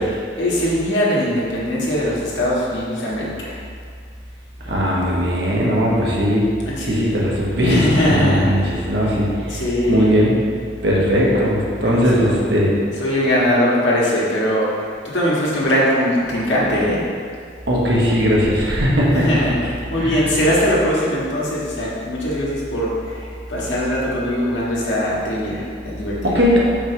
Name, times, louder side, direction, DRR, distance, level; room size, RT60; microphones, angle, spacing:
voice 1, 0.4-3.6 6.6-7.1 7.6-8.8 9.5-10.1 11.8-12.4 13.0-14.7 15.0-17.0 19.1-26.4, equal, 80° left, -7 dB, 1.8 m, -21 dB
voice 2, 4.6-6.4 6.8-9.6 9.9-10.4 10.8-12.7 17.7-19.5 20.0-20.3 26.2-26.7, equal, 65° right, -4 dB, 1.4 m, -18 dB
5.6 x 5.4 x 4.7 m, 2.1 s
head